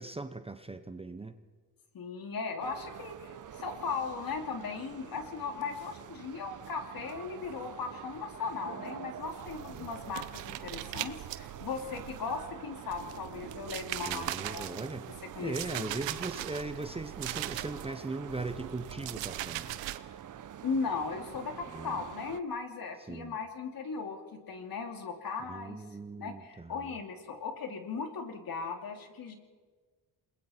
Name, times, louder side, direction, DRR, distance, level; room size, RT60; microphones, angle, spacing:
voice 1, 0.0-1.4 9.7-9.9 14.1-15.1 15.4-19.8 21.7-22.0 23.1-23.4 25.4-26.9, right 3 dB, 15° right, 9 dB, 0.9 m, -39 dB
voice 2, 1.9-14.7 15.3-15.9 20.6-25.8 26.2-29.3, left 5 dB, 55° left, 4 dB, 2.9 m, -37 dB
sound 1, 2.6-22.4, right 9 dB, 45° right, 0.9 m, -47 dB
sound 2, 9.2-12.5 12.9-18.0 18.3-20.0, right 14 dB, 85° right, 1.0 m, -40 dB
28.0 x 21.0 x 4.4 m, 1.5 s
cardioid pair, 95°, 43 cm